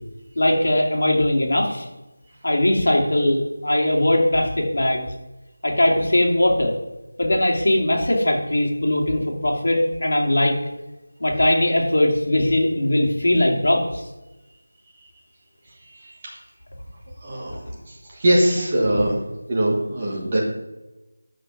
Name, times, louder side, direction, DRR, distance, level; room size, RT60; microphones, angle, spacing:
voice 1, 0.4-1.8 2.4-5.1 5.6-6.8 7.2-10.6 11.2-14.0 18.9-19.1, left 1 dB, 55° left, 0 dB, 2.5 m, -20 dB
voice 2, 17.2-17.6 18.1-19.1 19.5-20.4, right 1 dB, 20° right, -3 dB, 1.3 m, -21 dB
10.5 x 6.4 x 5.3 m, 1.0 s
figure-of-eight pair, 180°, 0 cm